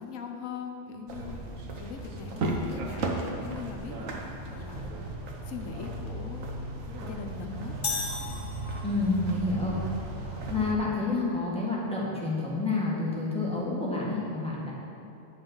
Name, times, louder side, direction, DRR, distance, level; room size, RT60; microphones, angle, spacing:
voice 1, 0.0-1.4 1.8-4.1 4.5-5.2 5.4-6.5 7.0-7.8, left 6 dB, 80° left, 4 dB, 1.1 m, -40 dB
sound 1, 1.1-10.7, right 2 dB, 90° right, 1.3 m, -35 dB
sound 2, 7.8-9.2, left 4 dB, 45° left, 1.1 m, -34 dB
voice 2, 8.8-9.8 10.5-14.7, left 3 dB, 5° left, -7 dB, 1.7 m, -29 dB
9.8 x 5.6 x 5.5 m, 2.7 s
omnidirectional pair, 1.3 m